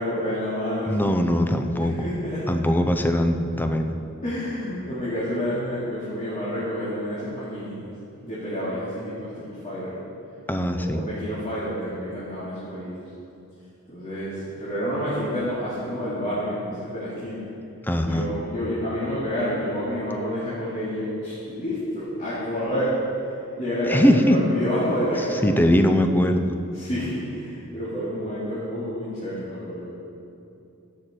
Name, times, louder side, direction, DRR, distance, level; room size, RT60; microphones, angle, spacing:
voice 1, 0.0-1.1 1.8-2.6 4.2-7.9 8.2-10.0 10.7-12.9 13.9-17.4 18.0-22.9 23.6-25.5 26.7-29.9, equal, 35° left, -10 dB, 2.5 m, -29 dB
voice 2, 0.9-2.1 2.5-3.9 10.5-11.0 17.8-18.3 23.9-24.4 25.4-26.5, equal, 10° left, 6 dB, 0.6 m, -21 dB
16.0 x 6.4 x 4.4 m, 2.7 s
head